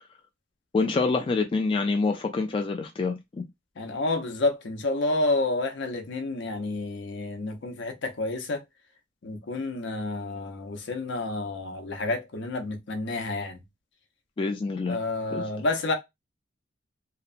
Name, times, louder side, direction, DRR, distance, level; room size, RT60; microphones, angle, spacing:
voice 1, 0.7-3.4 14.4-15.0 15.3-15.5, left 3 dB, 25° left, 0.3 m, -26 dB
voice 2, 3.8-8.6 9.2-13.6 14.9-15.9, left 2 dB, 65° left, 0.7 m, -29 dB
2.8 x 2.1 x 2.4 m
head